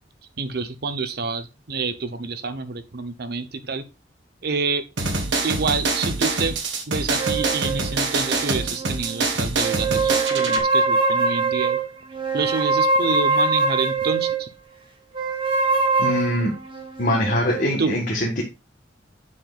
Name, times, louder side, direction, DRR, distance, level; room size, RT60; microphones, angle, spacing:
voice 1, 0.4-3.8 4.4-4.8 5.4-6.6 6.9-11.8 12.3-14.5 17.8-18.0, right 4 dB, 55° right, 10 dB, 0.9 m, -27 dB
sound 1, 5.0-10.6, right 3 dB, 80° right, 1.5 m, -25 dB
sound 2, 7.2-9.2 9.6-14.5 15.1-17.7, right 3 dB, 30° right, 1.3 m, -23 dB
voice 2, 16.0-16.5 17.0-18.4, left 1 dB, 50° left, -1 dB, 1.5 m, -22 dB
7.5 x 6.0 x 2.4 m, 0.26 s
head